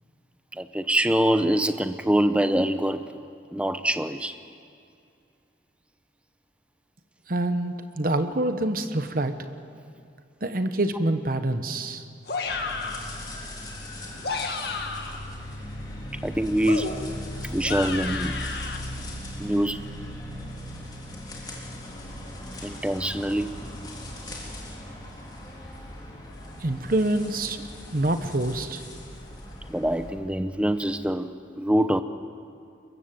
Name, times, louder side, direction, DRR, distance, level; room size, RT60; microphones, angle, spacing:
voice 1, 0.5-3.2 3.5-4.3 16.2-16.9 17.5-18.4 19.4-19.8 22.6-23.5 29.7-32.0, right 1 dB, 5° right, 10 dB, 0.7 m, -24 dB
voice 2, 7.3-9.3 10.4-12.1 26.6-27.6 27.9-28.8, right 1 dB, 50° right, 9 dB, 1.1 m, -26 dB
sound 1, 12.3-13.1 14.0-15.2 16.6-18.8, left 4 dB, 60° left, 1.9 m, -32 dB
sound 2, 12.5-30.1, left 1 dB, 20° left, 3.8 m, -38 dB
23.0 x 22.0 x 7.7 m, 2.4 s
head